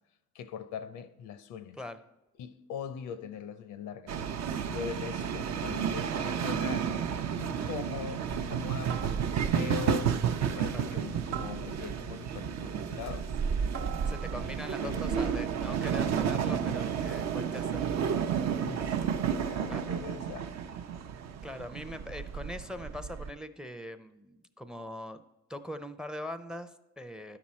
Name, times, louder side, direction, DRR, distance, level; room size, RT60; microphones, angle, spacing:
voice 1, 0.3-1.8 2.4-4.3 4.7-6.9 7.4-10.1 10.4-13.3 14.8-15.2 18.6-20.5, left 7 dB, 85° left, 0.7 m, -41 dB
sound 1, 4.1-23.3, right 7 dB, 60° right, 0.6 m, -31 dB
sound 2, 8.9-9.7 11.3-12.1 13.7-14.7 16.2-16.7, right 8 dB, 85° right, 1.0 m, -43 dB
voice 2, 14.0-18.0 19.7-19.8 21.4-25.2 25.5-27.4, left 1 dB, ahead, 0.5 m, -42 dB
11.5 x 6.0 x 4.2 m
cardioid pair, 90°, 30 cm